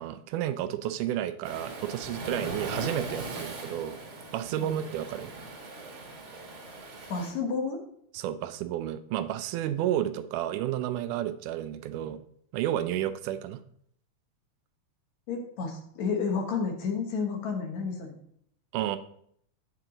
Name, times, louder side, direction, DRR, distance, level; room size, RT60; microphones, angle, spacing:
voice 1, 0.0-4.0 4.3-5.3 8.1-12.2 12.5-13.6 18.7-19.0, right 11 dB, 85° right, 11 dB, 2.1 m, -31 dB
Waves surf, 1.4-7.3, right 2 dB, 50° right, 2.1 m, -39 dB
voice 2, 7.1-7.8 15.3-18.1, left 5 dB, 65° left, 3 dB, 2.4 m, -31 dB
8.7 x 7.6 x 3.8 m, 0.66 s
omnidirectional pair, 3.6 m